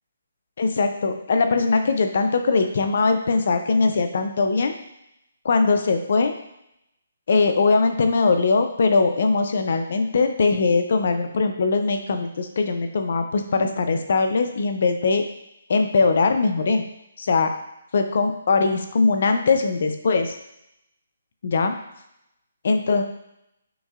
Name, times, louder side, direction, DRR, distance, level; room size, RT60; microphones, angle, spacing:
voice 1, 0.6-4.7 5.4-6.3 7.3-15.2 15.7-16.8 17.2-17.5 17.9-20.4 21.4-21.7 22.6-23.0, left 4 dB, 60° left, 7 dB, 0.5 m, -21 dB
6.0 x 2.7 x 2.4 m, 0.83 s
hypercardioid pair, 160°, 0 cm